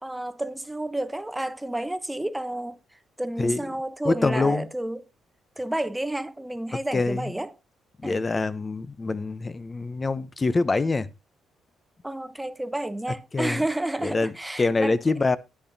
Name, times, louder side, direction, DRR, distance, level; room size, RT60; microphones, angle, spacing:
voice 1, 0.0-2.8 3.2-5.0 5.6-7.5 8.0-8.3 12.0-15.0, right 1 dB, 10° right, 1.0 m, -30 dB
voice 2, 4.0-4.7 6.9-7.3 8.0-11.1 13.3-13.6 14.0-14.3 14.6-15.4, left 3 dB, 30° left, 0.9 m, -25 dB
12.5 x 10.0 x 2.8 m
cardioid pair, 90°, 0 cm